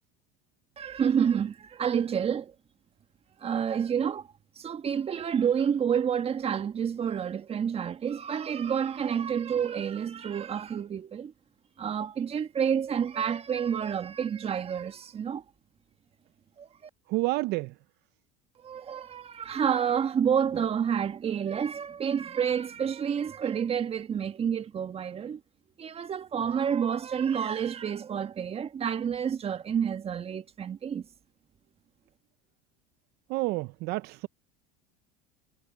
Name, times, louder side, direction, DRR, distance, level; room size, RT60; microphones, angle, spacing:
voice 1, 0.8-2.5 3.4-4.3 4.6-11.3 11.8-15.4 16.6-16.7 18.6-25.4 25.8-31.0, right 8 dB, 30° right, 1.5 m, -29 dB
voice 2, 17.1-17.7 33.3-34.3, right 21 dB, 60° right, 0.7 m, -29 dB
supercardioid pair, 100°, 19 cm